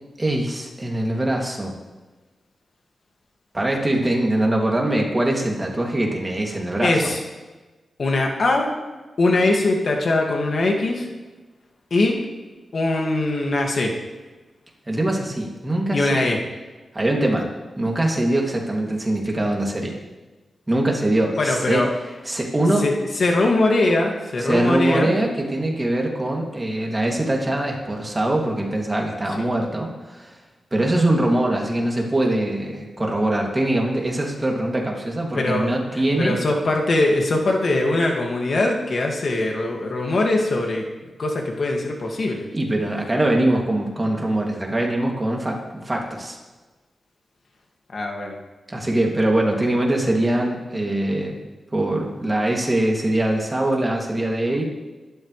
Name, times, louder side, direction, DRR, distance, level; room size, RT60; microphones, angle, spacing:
voice 1, 0.2-1.8 3.5-7.1 14.9-16.3 16.9-17.5 17.8-19.9 20.7-21.8 22.2-22.9 24.4-30.4 30.7-36.4 42.5-45.6 45.8-46.4 48.7-51.4 51.7-54.6, right 1 dB, 20° right, -1 dB, 2.6 m, -22 dB
voice 2, 6.8-7.2 8.0-8.7 9.2-11.1 11.9-12.2 12.7-13.9 15.9-16.4 21.4-21.9 22.8-25.1 35.3-35.8 36.2-40.9 41.2-42.5 47.9-48.4, left 2 dB, 55° left, 1 dB, 2.2 m, -21 dB
23.5 x 12.5 x 3.3 m, 1.2 s
wide cardioid pair, 105°, 0 cm